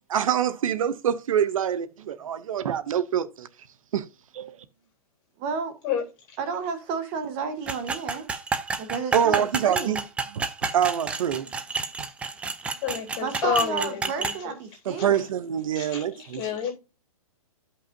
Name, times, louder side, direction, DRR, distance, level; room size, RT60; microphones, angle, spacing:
voice 1, 0.1-3.5 3.9-4.0 4.3-4.5 9.1-10.0 10.4-10.5 10.7-11.5 14.9-16.4, right 9 dB, 65° right, 0.7 m, -25 dB
voice 2, 5.4-5.7 6.4-8.2 8.8-10.0 11.4-11.5 13.2-15.3, right 5 dB, 30° right, 1.2 m, -32 dB
sound 1, 7.7-14.4, right 4 dB, 5° right, 0.4 m, -30 dB
voice 3, 12.8-14.6 15.0-15.1 15.7-16.7, left 7 dB, 25° left, 3.5 m, -29 dB
13.0 x 5.5 x 2.6 m
hypercardioid pair, 145°, 19 cm